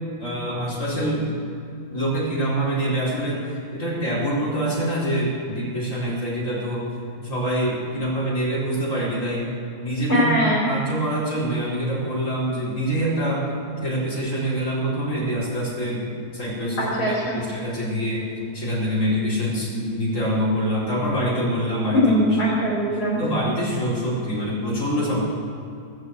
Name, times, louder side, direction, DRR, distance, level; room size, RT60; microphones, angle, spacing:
voice 1, 0.2-1.3 1.9-6.9 7.2-9.4 9.8-10.3 10.7-13.4 13.8-16.1 16.3-22.2 22.5-22.8 23.2-25.2, equal, 55° left, -7 dB, 4.8 m, -25 dB
voice 2, 10.1-10.7 16.8-17.4 21.9-23.2, equal, 90° left, -5 dB, 4.1 m, -21 dB
19.0 x 7.6 x 8.0 m, 2.6 s
omnidirectional pair, 1.7 m